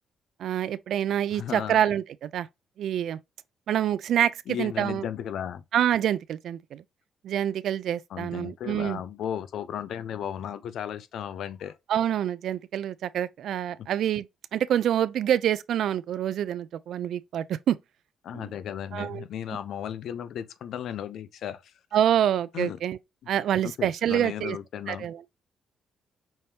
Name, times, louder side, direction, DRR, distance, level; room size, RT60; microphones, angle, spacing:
voice 1, 0.4-2.5 2.8-3.2 3.7-5.0 5.7-6.8 7.2-9.0 11.9-14.3 14.5-17.8 18.3-18.5 18.9-19.2 21.9-23.0 23.3-24.6 24.9-25.2, right 10 dB, 70° right, 0.3 m, -26 dB
voice 2, 1.3-1.8 4.5-5.6 8.1-11.8 13.8-13.9 18.2-21.7 22.5-22.8 23.6-25.1, left 9 dB, 70° left, 0.5 m, -35 dB
5.5 x 3.3 x 2.8 m
cardioid pair, 90°, 0 cm